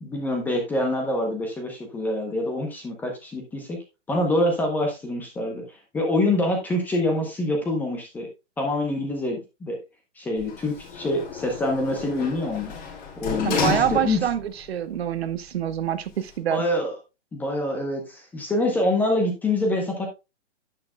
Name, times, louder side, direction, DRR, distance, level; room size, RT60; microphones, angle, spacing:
voice 1, 0.0-3.8 4.1-8.3 8.6-9.8 10.2-12.8 13.1-14.2 16.5-17.0 17.3-20.1, left 1 dB, 5° left, 0.8 m, -25 dB
Sliding door, 10.4-14.5 14.9-15.0, left 6 dB, 35° left, 3.1 m, -31 dB
voice 2, 13.4-14.4 14.7-16.6, right 10 dB, 55° right, 1.0 m, -26 dB
9.9 x 8.7 x 2.2 m
hypercardioid pair, 160°, 37 cm